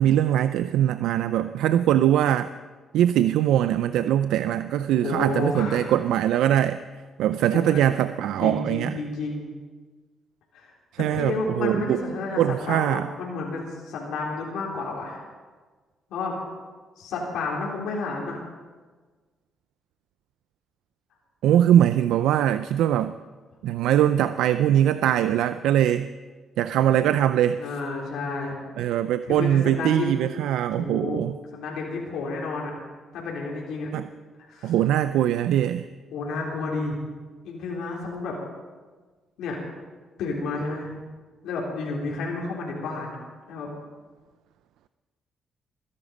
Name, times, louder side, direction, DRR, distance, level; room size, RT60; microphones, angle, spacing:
voice 1, 0.0-2.5 2.9-6.8 7.2-8.9 11.0-12.0 12.4-13.1 21.4-23.1 23.6-26.1 26.6-27.6 28.8-31.3 33.9-34.0 34.6-35.9, right 11 dB, 85° right, 12 dB, 0.4 m, -22 dB
voice 2, 5.0-5.9 7.5-7.9 8.4-9.4 10.5-10.7 11.1-15.2 16.1-16.4 17.0-18.4 27.6-28.6 29.3-30.1 30.7-31.2 31.5-32.7 33.1-33.9 34.5-34.7 36.1-37.0 37.4-38.3 39.4-39.6 40.2-40.9 41.4-43.1 43.5-43.7, left 3 dB, 85° left, -3 dB, 3.7 m, -31 dB
21.5 x 11.0 x 5.3 m, 1.4 s
cardioid pair, 90°, 0 cm